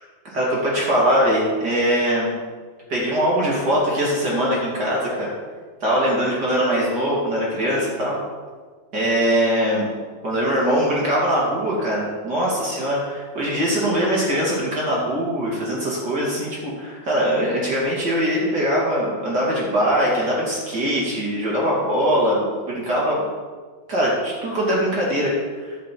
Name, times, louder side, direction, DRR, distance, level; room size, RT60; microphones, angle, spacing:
voice 1, 0.3-2.3 2.9-5.3 5.8-8.2 8.9-9.9 10.2-23.2 23.9-25.8, equal, 30° right, -5 dB, 2.5 m, -22 dB
12.0 x 6.7 x 4.5 m, 1.5 s
omnidirectional pair, 4.1 m